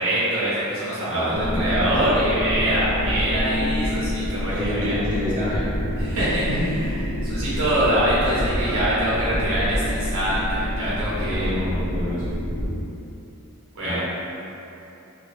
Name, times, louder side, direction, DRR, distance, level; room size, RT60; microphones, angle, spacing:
voice 1, 0.0-5.0 6.0-6.4 6.8-11.5 13.7-14.0, right 1 dB, 65° right, -10 dB, 0.8 m, -24 dB
voice 2, 1.1-1.9 4.5-5.6 6.4-6.7 7.2-7.3 11.1-12.2 13.8-14.0, left 1 dB, 35° right, -10 dB, 0.9 m, -27 dB
sound 1, 1.3-12.7, left 1 dB, 15° left, 0.7 m, -27 dB
3.1 x 2.3 x 3.1 m, 2.9 s
head